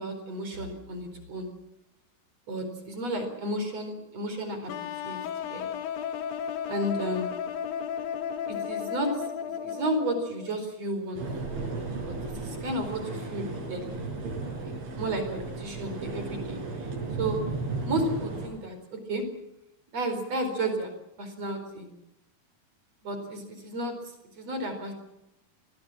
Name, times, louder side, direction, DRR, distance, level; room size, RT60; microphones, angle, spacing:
voice 1, 0.0-1.5 2.5-4.7 5.0-5.2 5.5-5.7 6.7-7.3 8.5-9.1 9.6-11.3 12.1-14.0 14.6-16.6 17.2-17.4 17.8-19.2 19.9-20.9 21.2-21.9 23.0-23.9 24.4-24.9, right 1 dB, 35° right, 7 dB, 5.1 m, -32 dB
sound 1, 4.7-10.5, left 8 dB, 65° left, 2.7 m, -34 dB
sound 2, 11.2-18.5, right 3 dB, 90° right, 7.5 m, -35 dB
26.5 x 21.0 x 7.5 m, 0.85 s
omnidirectional pair, 5.3 m